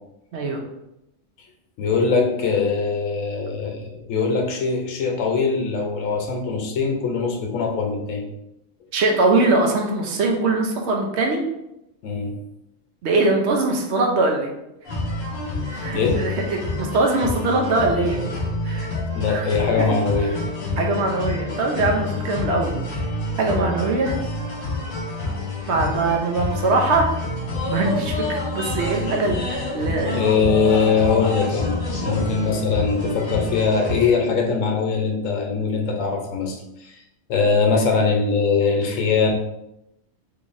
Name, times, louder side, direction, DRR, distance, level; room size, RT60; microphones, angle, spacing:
voice 1, 1.8-8.3 12.0-12.3 15.9-16.2 19.1-20.4 30.1-36.6 36.8-36.9 37.3-39.3, left 5 dB, 80° left, 2 dB, 1.0 m, -21 dB
voice 2, 8.9-11.4 13.0-14.5 15.7-18.3 18.6-18.9 19.3-19.4 19.8-19.9 20.8-22.7 23.4-24.2 25.7-27.1 27.7-30.2, right 3 dB, 65° right, 1 dB, 0.9 m, -22 dB
sound 1, 14.9-34.1, left 2 dB, 50° left, 1.0 m, -28 dB
3.6 x 3.1 x 2.6 m, 0.86 s
omnidirectional pair, 1.3 m